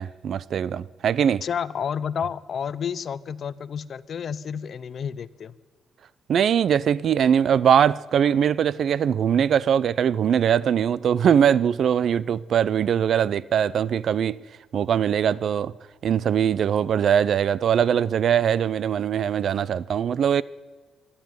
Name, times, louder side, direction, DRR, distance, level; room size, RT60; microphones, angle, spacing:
voice 1, 0.0-1.4 6.3-14.4 14.7-15.7 16.0-20.4, right 8 dB, 60° right, 0.6 m, -21 dB
voice 2, 1.4-5.5, left 7 dB, 50° left, 0.7 m, -30 dB
24.5 x 11.5 x 9.6 m
cardioid pair, 110°, 0 cm